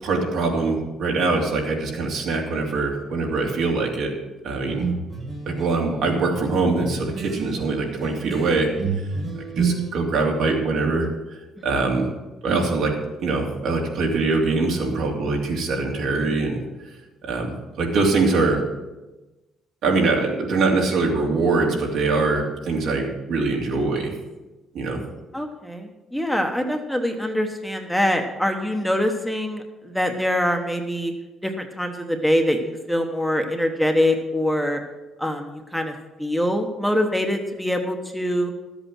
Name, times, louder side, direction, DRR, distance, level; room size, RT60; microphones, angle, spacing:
voice 1, 0.0-4.1 4.4-4.9 5.5-8.7 9.5-11.1 11.6-12.1 12.4-12.9 13.2-16.6 17.2-18.6 19.8-24.1 24.7-25.0, right 3 dB, 70° right, 0 dB, 2.9 m, -23 dB
sound 1, 4.7-9.9, right 5 dB, 30° right, 1.9 m, -29 dB
voice 2, 25.3-31.1 31.4-34.8 35.2-35.9 36.2-38.5, left 1 dB, ahead, 3 dB, 1.1 m, -24 dB
12.5 x 8.1 x 6.2 m, 1.1 s
cardioid pair, 130°, 0 cm